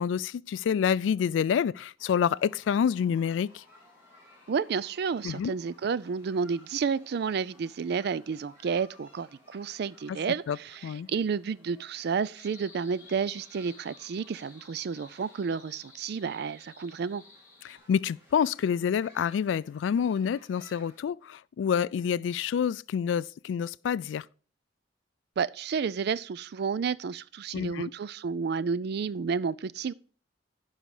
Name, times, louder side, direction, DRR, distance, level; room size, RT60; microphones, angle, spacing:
voice 1, 0.0-3.6 5.2-5.5 10.5-10.6 10.8-11.1 17.6-24.2 27.5-27.9, left 7 dB, 85° left, 0.3 m, -28 dB
sound 1, 2.0-21.0, left 2 dB, 15° right, 3.8 m, -58 dB
voice 2, 4.5-17.2 25.4-29.9, right 5 dB, 60° right, 0.4 m, -31 dB
sound 2, 12.3-17.8, left 3 dB, 15° left, 2.1 m, -54 dB
10.5 x 5.6 x 4.8 m
head